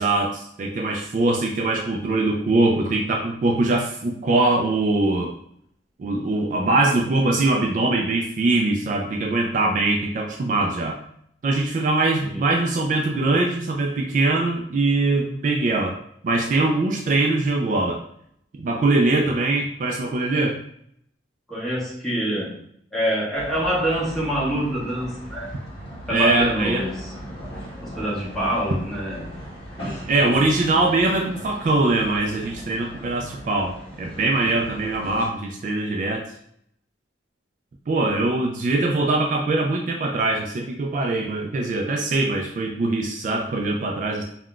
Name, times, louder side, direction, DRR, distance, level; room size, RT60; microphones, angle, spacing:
voice 1, 0.0-5.3 6.0-11.0 11.4-16.0 16.2-18.0 18.6-20.6 26.1-26.9 30.1-36.3 37.9-44.2, right 2 dB, 45° right, 1 dB, 0.3 m, -22 dB
voice 2, 21.5-22.6 22.9-25.5 26.1-27.1 27.8-29.4 29.8-30.4, equal, 5° left, -7 dB, 0.9 m, -26 dB
sound 1, 23.3-35.3, equal, 30° left, 1.1 m, -38 dB
3.6 x 2.2 x 2.3 m, 0.69 s
head